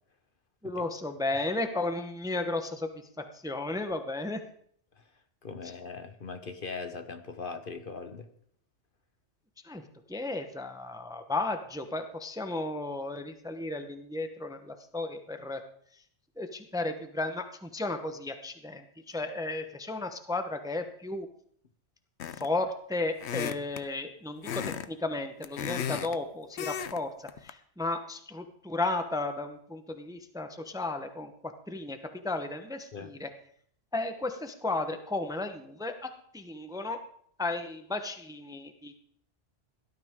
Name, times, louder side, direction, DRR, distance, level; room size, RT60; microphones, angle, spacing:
voice 1, 0.6-4.4 5.6-5.7 9.6-9.8 10.1-15.6 15.9-16.0 16.4-21.3 22.2-31.3 31.7-32.0 32.2-33.3 33.9-37.0 37.4-39.0, left 2 dB, 5° right, 7 dB, 0.8 m, -34 dB
voice 2, 5.4-8.3 32.9-33.1, left 4 dB, 50° left, 8 dB, 1.1 m, -40 dB
sound 1, 22.2-22.6 23.2-23.8 24.4-24.9 25.2-26.2 26.6-27.0 27.3-27.5, left 8 dB, 70° left, 1.0 m, -34 dB
17.5 x 12.5 x 3.7 m, 0.62 s
omnidirectional pair, 1.2 m